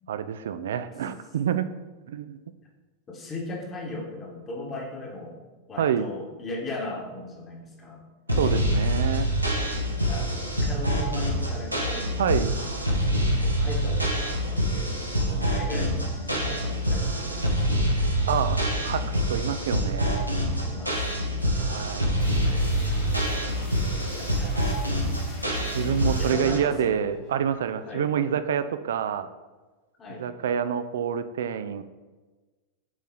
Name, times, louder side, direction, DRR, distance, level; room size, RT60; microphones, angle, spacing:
voice 1, 0.1-1.7 2.1-2.4 5.8-6.1 8.3-9.3 12.2-12.6 18.3-20.3 21.6-22.2 25.7-29.3 30.1-31.8, right 8 dB, 60° right, 11 dB, 0.4 m, -27 dB
voice 2, 3.1-5.4 5.7-8.0 10.0-12.1 13.3-18.0 20.6-21.1 21.5-21.7 22.2-23.2 23.9-24.8 26.2-27.0 27.8-28.1 30.0-30.3, left 2 dB, 25° left, 0 dB, 1.4 m, -38 dB
sound 1, 8.3-26.6, equal, 90° right, 1.0 m, -26 dB
sound 2, 22.2-27.8, left 1 dB, 50° left, 2.0 m, -44 dB
7.5 x 4.2 x 3.8 m, 1.3 s
figure-of-eight pair, 90°, 0 cm